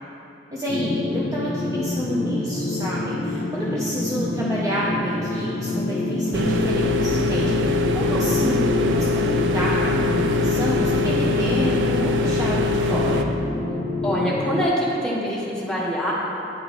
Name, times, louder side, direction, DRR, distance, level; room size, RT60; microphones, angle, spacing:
voice 1, 0.5-13.3, equal, 20° right, -7 dB, 0.5 m, -29 dB
sound 1, 0.7-14.7, left 2 dB, 75° left, 0.5 m, -27 dB
sound 2, 6.3-13.2, left 2 dB, 70° right, 0.4 m, -23 dB
voice 2, 14.0-16.1, equal, 5° left, -6 dB, 1.0 m, -24 dB
9.5 x 3.7 x 3.2 m, 2.8 s
head